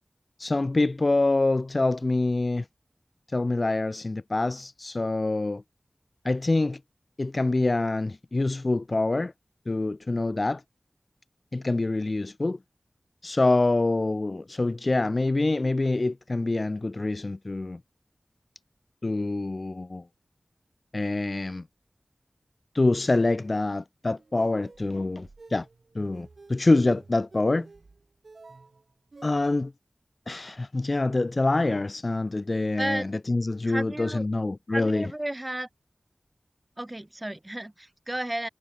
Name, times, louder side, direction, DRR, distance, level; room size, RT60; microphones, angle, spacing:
voice 1, 0.4-2.7 3.3-5.6 6.2-6.8 7.2-9.3 9.7-10.6 11.5-12.6 13.2-17.8 19.0-20.0 20.9-21.6 22.7-25.7 25.9-27.7 29.2-29.7 30.3-35.1, left 2 dB, 50° left, 0.5 m, -25 dB
sound 1, 24.2-29.3, right 3 dB, 75° right, 3.7 m, -51 dB
voice 2, 33.6-34.3 34.7-35.7 36.8-38.5, right 1 dB, 25° right, 1.2 m, -33 dB
wide cardioid pair, 65°, 0 cm